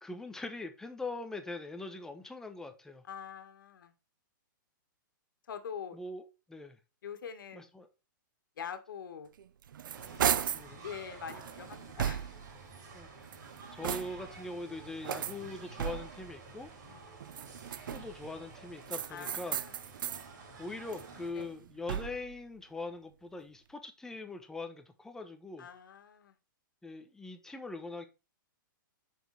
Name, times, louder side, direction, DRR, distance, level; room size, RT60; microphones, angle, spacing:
voice 1, 0.0-3.0 5.9-6.2 6.5-6.8 7.5-7.9 10.3-10.8 12.9-13.3 13.7-16.7 17.9-19.6 20.6-25.7 26.8-28.1, left 2 dB, 5° left, 0.9 m, -42 dB
voice 2, 3.1-3.9 5.5-6.0 7.0-7.7 8.6-9.3 10.8-12.3 16.9-17.1 19.1-19.7 21.3-21.5 25.6-26.3, left 7 dB, 75° left, 1.8 m, -44 dB
sound 1, 9.4-10.7 11.3-12.6 13.2-14.4 15.0-16.3 17.2-18.2 18.9-20.3 20.7-22.3, right 9 dB, 75° right, 0.6 m, -36 dB
sound 2, 9.9-21.3, right 3 dB, 55° right, 3.4 m, -51 dB
6.9 x 6.3 x 3.3 m
hypercardioid pair, 160°, 11 cm